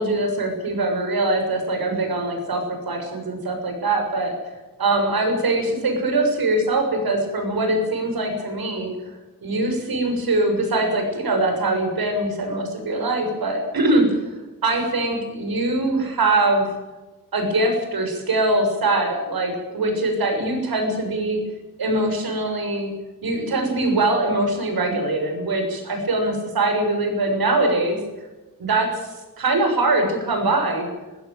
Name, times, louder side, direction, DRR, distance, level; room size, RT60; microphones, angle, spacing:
voice 1, 0.0-4.3 4.8-8.9 9.4-14.1 14.6-16.6 17.3-21.4 21.8-22.9 23.2-28.0 28.6-30.9, right 2 dB, 85° right, 4 dB, 6.9 m, -22 dB
21.0 x 16.0 x 9.1 m, 1.2 s
wide cardioid pair, 175°, 35 cm